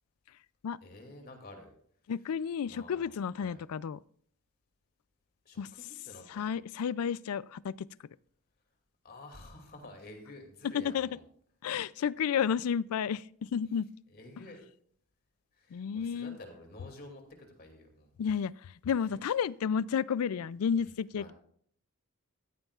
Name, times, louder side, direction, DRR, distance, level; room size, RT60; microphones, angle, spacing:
voice 1, 0.8-1.7 2.7-3.6 5.4-6.5 9.0-11.2 14.1-14.6 15.6-18.1 19.1-19.2 21.2-21.3, left 2 dB, 45° left, 2.5 m, -50 dB
voice 2, 2.1-4.0 5.6-5.7 6.3-7.9 10.6-11.2 11.6-13.9 14.4-14.5 15.7-16.4 18.2-21.3, left 7 dB, 75° left, 0.4 m, -32 dB
14.5 x 14.5 x 2.4 m
head